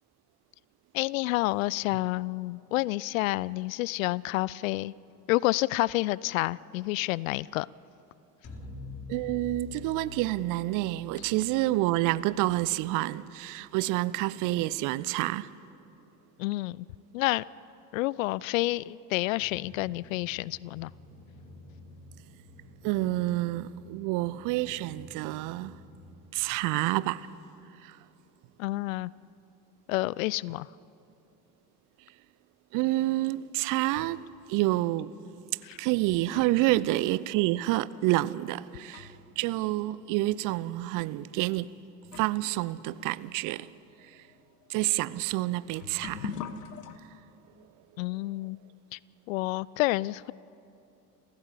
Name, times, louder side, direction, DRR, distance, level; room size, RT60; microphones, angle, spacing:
voice 1, 0.9-4.9 5.3-7.7 16.4-16.9 17.1-17.4 17.9-20.9 28.6-29.1 29.9-30.7 35.6-35.8 48.0-48.6 48.9-49.0 49.3-50.3, left 19 dB, 55° left, 0.5 m, -29 dB
sound 1, 8.4-12.8, left 4 dB, 30° left, 4.2 m, -45 dB
voice 2, 9.1-15.5 22.8-25.8 26.3-27.3 27.8-28.0 32.7-35.2 35.8-41.7 42.2-43.7 44.0-44.2 44.7-46.4, right 17 dB, 40° right, 0.6 m, -28 dB
sound 2, 19.3-26.3, left 1 dB, 70° right, 7.7 m, -51 dB
sound 3, 33.2-34.3 35.2-35.3 36.0-39.4 39.7-39.8 40.6-40.8 41.6-41.7 42.0-47.0, left 8 dB, 75° left, 1.2 m, -45 dB
28.5 x 15.5 x 8.3 m
figure-of-eight pair, 65°, 48 cm